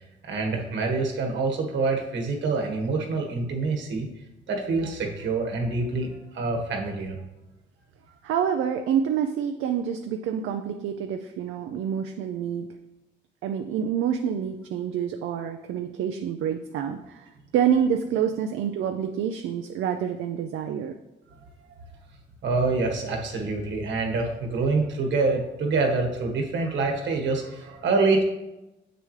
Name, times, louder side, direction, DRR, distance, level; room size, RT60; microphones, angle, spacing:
voice 1, 0.2-4.1 4.5-7.2 21.3-21.4 22.4-28.2, right 3 dB, 70° right, 2 dB, 1.5 m, -26 dB
voice 2, 8.2-12.7 13.4-20.9, right 8 dB, 85° right, 5 dB, 0.5 m, -27 dB
7.6 x 6.8 x 3.2 m, 0.98 s
cardioid pair, 90°, 20 cm